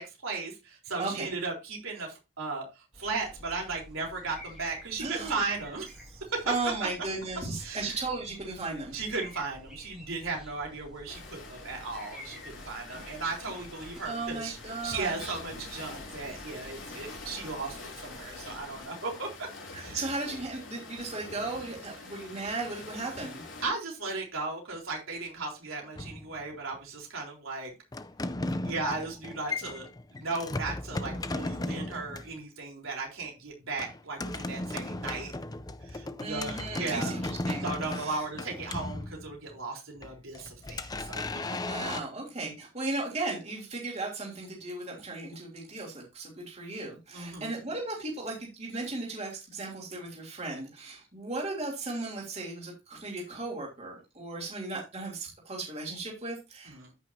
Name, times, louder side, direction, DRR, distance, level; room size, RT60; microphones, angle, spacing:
voice 1, 0.0-6.7 7.6-8.0 8.9-19.5 19.8-20.1 23.6-27.7 28.6-35.3 35.8-37.2 37.6-41.2 47.1-47.5 56.6-56.9, right 3 dB, 75° right, -1 dB, 4.0 m, -36 dB
voice 2, 1.0-1.3 5.0-5.4 6.4-9.0 14.0-15.4 19.7-23.4 36.2-38.2 41.5-56.9, right 2 dB, 30° right, -2 dB, 3.2 m, -36 dB
sound 1, 2.9-18.9, equal, 5° right, 1.9 m, -50 dB
sound 2, 11.1-23.7, left 3 dB, 65° left, 3.4 m, -45 dB
sound 3, 26.0-26.8 27.9-32.4 33.8-39.6 40.0-42.0, left 2 dB, 20° left, 0.4 m, -36 dB
13.5 x 6.1 x 2.8 m, 0.26 s
head